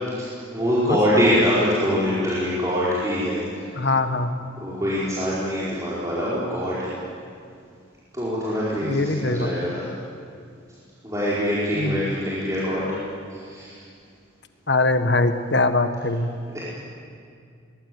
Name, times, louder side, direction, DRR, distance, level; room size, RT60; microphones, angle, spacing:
voice 1, 0.0-3.6 4.6-6.9 8.1-9.8 11.0-12.8 13.3-13.8 16.5-16.6, equal, 15° right, -9 dB, 4.8 m, -24 dB
voice 2, 3.8-4.3 8.8-9.5 11.8-12.1 14.7-16.3, left 2 dB, 60° left, 8 dB, 1.4 m, -22 dB
23.0 x 21.0 x 9.5 m, 2.3 s
head